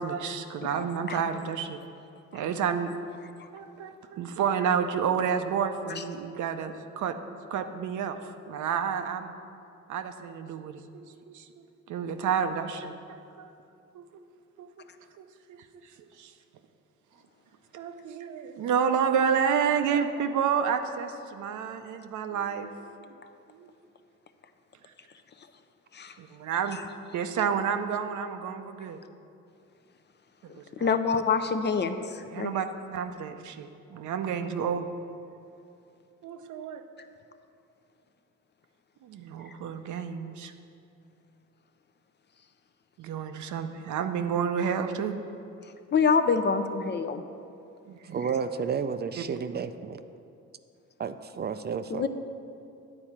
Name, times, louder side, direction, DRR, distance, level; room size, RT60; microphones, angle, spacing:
voice 1, 0.0-1.8 2.3-2.9 3.5-7.2 7.5-9.3 9.9-13.5 13.9-14.0 14.6-14.8 15.2-15.6 16.2-16.3 17.7-23.1 23.5-23.7 26.2-26.8 27.1-29.0 30.5-30.9 32.3-32.7 32.9-34.9 36.2-36.8 39.0-40.5 43.0-45.2 47.9-48.2, right 7 dB, 75° right, 8 dB, 0.7 m, -30 dB
voice 2, 30.8-32.6 39.5-39.6 45.6-47.2 51.9-52.1, left 5 dB, 35° left, 9 dB, 0.5 m, -27 dB
voice 3, 48.0-50.0 51.0-52.1, right 6 dB, 35° right, 11 dB, 0.4 m, -31 dB
10.0 x 4.4 x 7.3 m, 2.6 s
cardioid pair, 90°, 30 cm